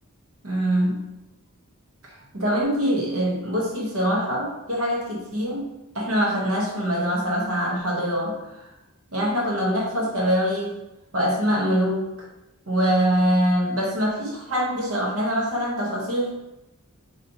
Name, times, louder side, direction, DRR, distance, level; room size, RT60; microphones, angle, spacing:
voice 1, 0.4-1.0 2.0-5.7 5.9-8.4 8.6-8.7 9.1-10.8 11.1-12.1 12.7-16.3, equal, 65° right, -4 dB, 1.1 m, -24 dB
3.1 x 2.8 x 4.0 m, 0.93 s
head